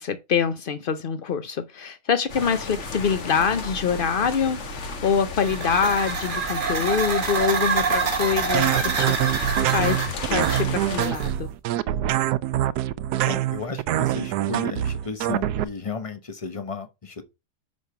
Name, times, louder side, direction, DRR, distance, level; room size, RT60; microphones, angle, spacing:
voice 1, 0.0-9.2 9.7-11.5, left 6 dB, 70° left, 0.5 m, -25 dB
sound 1, 2.3-11.1, left 3 dB, 50° left, 1.5 m, -34 dB
sound 2, 5.4-11.5, right 5 dB, 35° right, 1.2 m, -27 dB
sound 3, 8.5-15.6, right 13 dB, 75° right, 1.1 m, -25 dB
voice 2, 13.2-17.2, left 4 dB, 25° left, 1.0 m, -33 dB
6.2 x 5.2 x 5.6 m
omnidirectional pair, 1.7 m